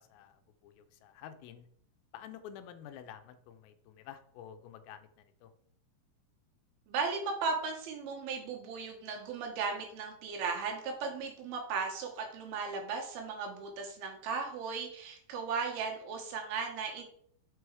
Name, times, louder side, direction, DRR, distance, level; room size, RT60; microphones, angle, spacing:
voice 1, 0.0-1.7 2.1-5.5, left 9 dB, 85° left, 10 dB, 2.4 m, -50 dB
voice 2, 6.9-17.0, right 5 dB, 90° right, 1 dB, 3.2 m, -36 dB
6.1 x 4.8 x 4.7 m, 0.64 s
omnidirectional pair, 4.3 m